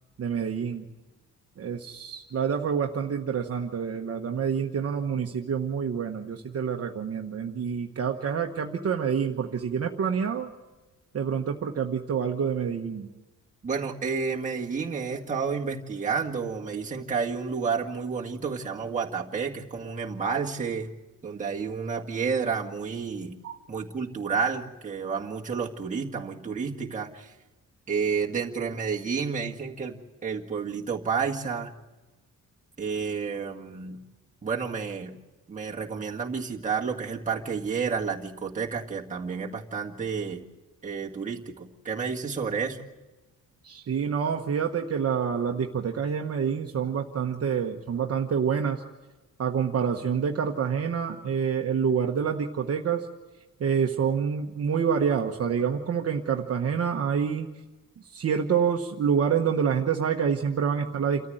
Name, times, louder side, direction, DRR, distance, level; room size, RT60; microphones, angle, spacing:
voice 1, 0.2-0.9 1.6-10.5 11.1-13.1 23.4-23.6 43.6-48.8 49.4-53.1 53.6-57.5 58.1-61.3, right 7 dB, 50° right, 2 dB, 1.2 m, -27 dB
voice 2, 13.6-20.9 21.2-23.4 23.7-27.3 27.9-30.0 30.2-31.7 32.8-34.0 34.4-35.2 35.5-40.4 40.8-42.8, right 5 dB, 25° right, -2 dB, 1.9 m, -30 dB
28.5 x 14.0 x 7.8 m, 1.1 s
wide cardioid pair, 160°, 32 cm